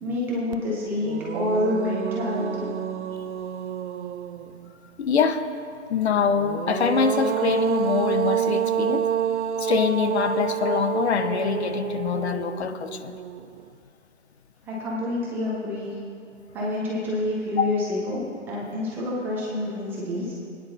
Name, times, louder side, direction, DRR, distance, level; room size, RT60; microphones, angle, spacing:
voice 1, 0.0-2.7 14.7-16.0 16.5-20.3, left 1 dB, 5° right, -5 dB, 0.5 m, -28 dB
sound 1, 0.5-0.6 1.0-4.7 6.3-13.6, right 9 dB, 70° right, 0.6 m, -28 dB
voice 2, 5.0-5.4 5.9-9.1 9.6-13.2 17.6-17.7, left 6 dB, 60° left, 9 dB, 0.8 m, -24 dB
22.5 x 9.7 x 2.7 m, 2.4 s
hypercardioid pair, 150°, 36 cm